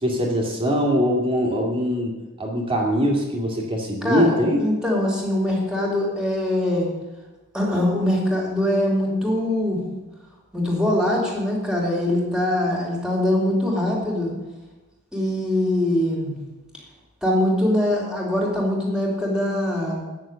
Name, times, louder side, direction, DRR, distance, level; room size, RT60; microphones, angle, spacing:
voice 1, 0.0-4.7, equal, 25° right, 0 dB, 2.5 m, -22 dB
voice 2, 4.0-6.9 7.5-9.8 10.5-14.3 15.1-16.4 17.2-20.0, left 1 dB, 5° right, -3 dB, 3.4 m, -22 dB
9.7 x 7.0 x 9.0 m, 1.1 s
head